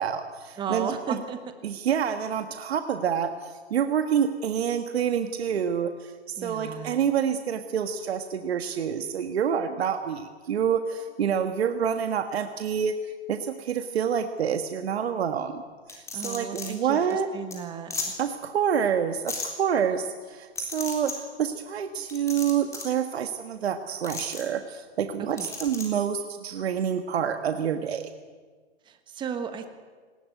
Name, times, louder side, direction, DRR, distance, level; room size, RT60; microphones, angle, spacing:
voice 1, 0.0-1.2 1.6-15.6 15.9-17.3 18.2-28.1, right 8 dB, 65° right, 7 dB, 1.6 m, -27 dB
voice 2, 0.6-1.4 6.4-7.0 16.1-18.2 25.2-25.5 28.8-29.7, right 7 dB, 15° right, 8 dB, 1.4 m, -35 dB
sound 1, 15.9-16.7 17.1-17.2 17.5-17.6 17.9-18.1 19.3-19.5 20.5-21.1 22.1-22.9 24.0-24.4 25.4-25.9, left 4 dB, 10° left, 3.8 m, -34 dB
19.0 x 18.5 x 9.4 m, 1.5 s
hypercardioid pair, 145°, 33 cm